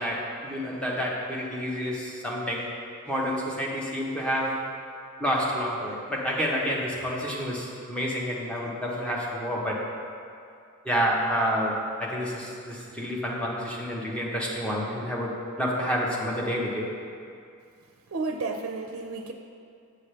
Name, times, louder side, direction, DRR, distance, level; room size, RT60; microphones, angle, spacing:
voice 1, 0.0-2.7 3.1-4.6 5.2-9.8 10.8-16.9, equal, 5° left, -4 dB, 0.9 m, -29 dB
voice 2, 18.1-19.3, right 3 dB, 65° right, 3 dB, 0.5 m, -32 dB
7.6 x 7.2 x 3.3 m, 2.4 s
head